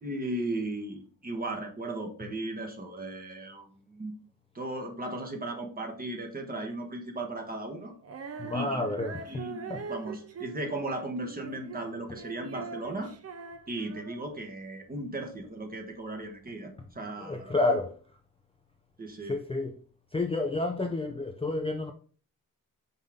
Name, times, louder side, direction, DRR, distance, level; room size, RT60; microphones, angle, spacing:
voice 1, 0.0-4.1 4.5-7.9 8.5-8.8 9.3-13.1 13.7-17.8 19.0-19.4, right 2 dB, 25° right, 1.3 m, -36 dB
Female singing, 8.0-14.4, right 5 dB, 45° right, 0.8 m, -42 dB
voice 2, 8.4-9.4 9.7-9.8 17.2-18.0 19.3-19.8 20.1-21.9, left 2 dB, 15° left, 0.5 m, -30 dB
5.5 x 5.5 x 3.6 m
wide cardioid pair, 135°, 34 cm